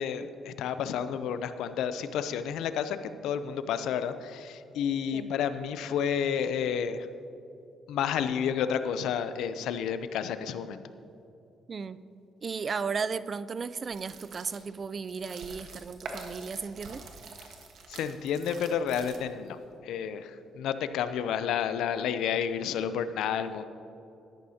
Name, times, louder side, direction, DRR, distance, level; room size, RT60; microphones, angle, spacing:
voice 1, 0.0-7.1 7.9-10.8 17.9-19.6 19.8-23.6, left 8 dB, 85° left, 11 dB, 0.5 m, -30 dB
voice 2, 11.7-12.0 12.4-17.0, right 5 dB, 40° right, 15 dB, 0.4 m, -35 dB
sound 1, 13.8-19.5, right 4 dB, 70° right, 1.3 m, -46 dB
13.0 x 11.0 x 2.8 m, 2.8 s
cardioid pair, 90°, 0 cm